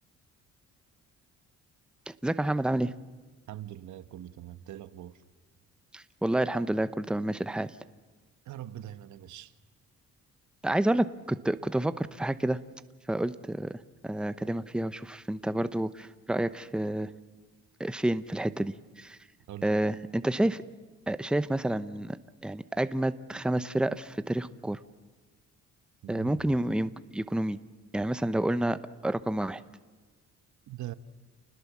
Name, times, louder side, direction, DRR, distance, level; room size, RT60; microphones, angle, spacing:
voice 1, 2.1-2.9 5.9-7.7 10.6-12.6 13.1-17.1 17.8-19.2 19.6-20.6 21.1-24.8 26.1-27.6 27.9-29.6, right 1 dB, 5° right, 0.8 m, -29 dB
voice 2, 3.5-5.2 8.4-9.5 19.5-19.7 26.0-26.5 30.7-30.9, right 13 dB, 75° right, 1.1 m, -42 dB
29.0 x 20.0 x 7.3 m
cardioid pair, 90°, 30 cm